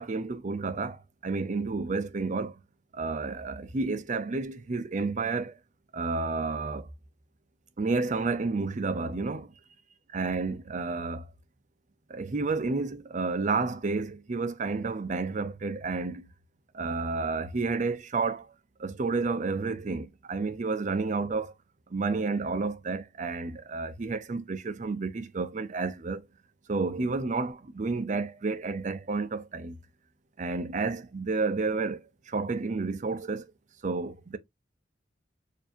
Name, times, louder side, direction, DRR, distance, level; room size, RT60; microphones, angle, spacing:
voice 1, 0.0-2.6 2.9-5.6 5.9-6.9 7.8-9.5 10.1-11.3 12.1-16.3 16.7-18.5 18.8-21.5 21.9-26.2 26.7-29.8 30.4-33.5 33.8-34.4, right 3 dB, 40° right, 0.5 m, -30 dB
4.6 x 2.6 x 2.5 m
head